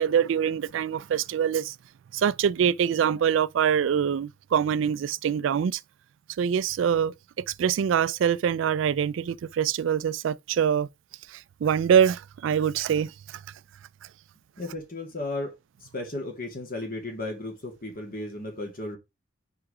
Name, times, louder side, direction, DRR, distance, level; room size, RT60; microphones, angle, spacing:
voice 1, 0.0-1.8 2.1-5.8 6.4-10.9 11.3-13.4, right 8 dB, 65° right, 0.3 m, -24 dB
voice 2, 14.6-15.5 15.9-19.0, left 2 dB, 45° left, 2.2 m, -34 dB
4.9 x 4.8 x 4.8 m
head